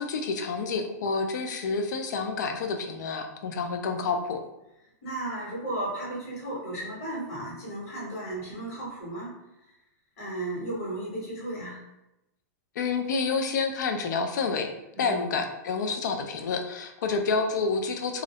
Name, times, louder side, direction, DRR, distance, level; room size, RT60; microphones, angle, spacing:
voice 1, 0.0-4.4 12.8-14.7 15.0-18.2, left 4 dB, 80° left, 5 dB, 0.4 m, -29 dB
voice 2, 5.0-9.3 10.2-11.8 14.9-15.3, right 1 dB, 55° left, -5 dB, 1.2 m, -34 dB
2.4 x 2.0 x 2.7 m, 0.90 s
supercardioid pair, 170°, 10 cm